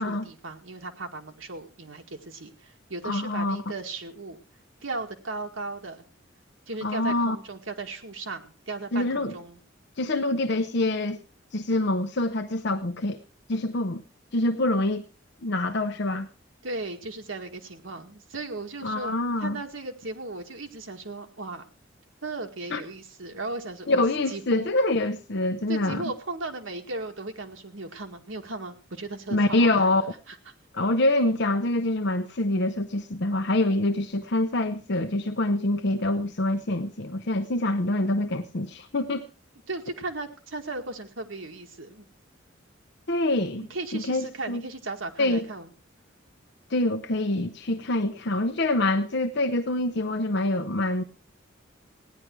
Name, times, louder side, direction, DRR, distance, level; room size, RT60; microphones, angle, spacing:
voice 1, 0.0-4.4 4.8-6.0 6.7-9.6 16.6-19.2 19.4-21.7 22.2-24.0 24.3-24.7 25.7-30.4 39.7-42.0 43.6-45.7, right 2 dB, 90° right, 4 dB, 2.1 m, -36 dB
voice 2, 3.0-3.6 6.8-7.4 8.9-9.3 10.0-11.2 11.5-13.2 13.5-14.0 14.3-15.0 15.4-16.3 18.8-19.6 22.7-22.8 23.9-26.0 29.3-30.0 30.7-39.2 43.1-43.7 43.9-44.6 45.2-45.5 46.7-51.0, left 2 dB, 60° left, 6 dB, 0.8 m, -25 dB
17.0 x 10.5 x 4.7 m, 0.35 s
head